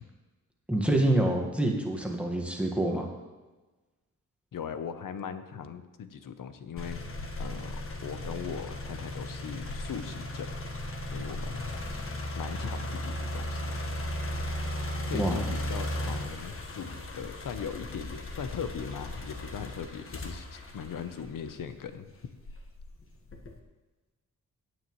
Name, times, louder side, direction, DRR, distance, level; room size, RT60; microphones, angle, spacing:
voice 1, 0.7-3.1 15.1-15.4, right 1 dB, 5° right, 0 dB, 1.6 m, -26 dB
voice 2, 4.5-7.0 7.4-10.5 11.1-11.6 12.4-13.7 15.0-22.1, left 7 dB, 70° left, 10 dB, 0.9 m, -39 dB
sound 1, 6.8-21.8 22.4-23.6, left 1 dB, 40° left, 1.4 m, -36 dB
16.5 x 9.2 x 3.1 m, 1.2 s
wide cardioid pair, 125°, 34 cm